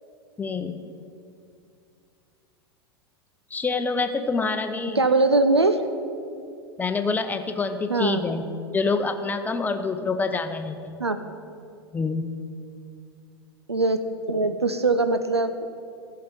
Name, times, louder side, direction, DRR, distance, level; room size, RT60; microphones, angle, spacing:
voice 1, 0.4-0.8 3.5-5.0 6.8-8.4 8.7-11.0 11.9-12.3, left 4 dB, 15° left, 8 dB, 0.7 m, -26 dB
voice 2, 4.9-5.8 7.9-8.3 11.0-11.2 13.7-15.7, right 2 dB, 90° right, 9 dB, 0.5 m, -22 dB
14.0 x 5.7 x 6.9 m, 2.4 s
figure-of-eight pair, 90°, 13 cm